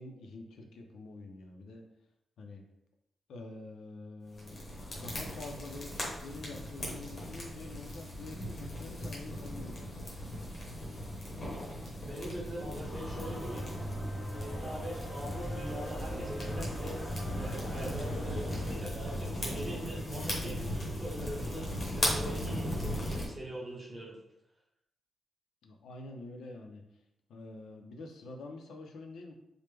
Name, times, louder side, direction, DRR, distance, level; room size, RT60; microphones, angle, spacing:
voice 1, 0.0-1.8 2.4-2.6 3.3-4.6 4.9-10.1 25.6-26.8 27.3-29.3, left 2 dB, 90° left, 3 dB, 0.5 m, -46 dB
sound 1, 4.3-23.3, equal, 40° left, 1.0 m, -38 dB
voice 2, 12.0-13.7 14.3-17.0 17.3-24.2, right 1 dB, 30° right, -4 dB, 0.9 m, -42 dB
sound 2, 12.8-18.8, equal, 15° left, 0.6 m, -41 dB
3.2 x 2.1 x 3.3 m, 0.82 s
wide cardioid pair, 130°, 0 cm